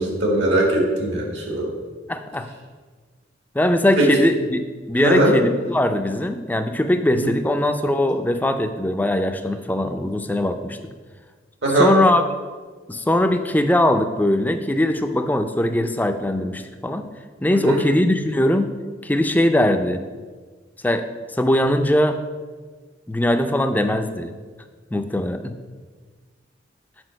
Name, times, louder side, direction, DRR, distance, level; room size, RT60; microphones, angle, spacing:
voice 1, 0.0-1.7 4.0-4.1 4.9-5.4 7.2-7.3 11.6-11.9 17.5-17.8, right 1 dB, 80° right, -1 dB, 2.0 m, -20 dB
voice 2, 2.1-2.5 3.5-4.6 4.9-10.8 11.8-12.2 12.9-17.0 17.4-18.7 19.0-20.0 20.8-21.1 21.3-22.2 23.1-24.3 24.9-25.5, left 1 dB, 10° left, 7 dB, 0.4 m, -20 dB
6.2 x 4.8 x 6.3 m, 1.4 s
head